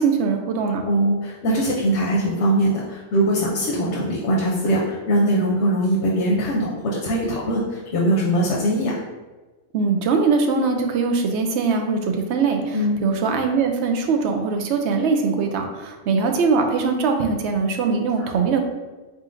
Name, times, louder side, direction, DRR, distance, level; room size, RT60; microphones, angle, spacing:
voice 1, 0.0-0.8 9.7-18.6, right 4 dB, 85° right, 4 dB, 0.9 m, -21 dB
voice 2, 0.9-9.0 12.7-13.0, right 1 dB, 85° left, -3 dB, 1.0 m, -21 dB
4.1 x 3.7 x 2.5 m, 1.2 s
omnidirectional pair, 1.1 m